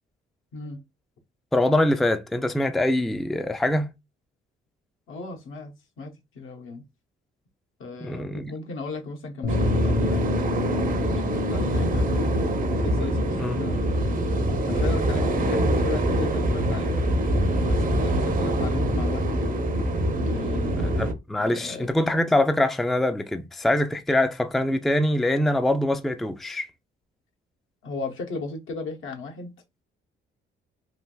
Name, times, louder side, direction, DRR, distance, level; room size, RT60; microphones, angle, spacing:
voice 1, 0.5-0.8 5.1-6.8 7.8-12.3 12.8-13.8 14.7-17.1 17.6-19.6 20.2-20.9 21.4-21.9 27.8-29.5, left 3 dB, 70° left, 0.9 m, -36 dB
voice 2, 1.5-3.9 8.0-8.5 13.3-13.6 20.7-26.7, left 1 dB, ahead, 0.4 m, -24 dB
Bass guitar, 9.4-15.7, left 5 dB, 35° left, 0.7 m, -32 dB
sound 1, 9.5-21.1, right 1 dB, 40° right, 0.7 m, -24 dB
3.2 x 2.5 x 2.2 m
cardioid pair, 70°, 21 cm